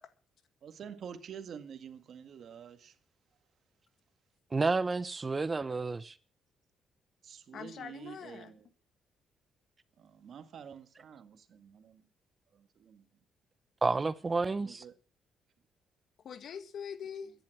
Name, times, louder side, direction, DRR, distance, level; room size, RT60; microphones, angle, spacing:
voice 1, 0.6-3.0 7.2-8.7 10.0-12.0 12.5-13.1 14.6-14.9, right 7 dB, 60° right, 1.8 m, -48 dB
voice 2, 4.5-6.1 13.8-14.8, right 3 dB, 25° right, 0.8 m, -30 dB
voice 3, 7.5-8.5 16.2-17.3, left 7 dB, 60° left, 1.7 m, -43 dB
14.5 x 11.0 x 6.0 m
cardioid pair, 90°, 0 cm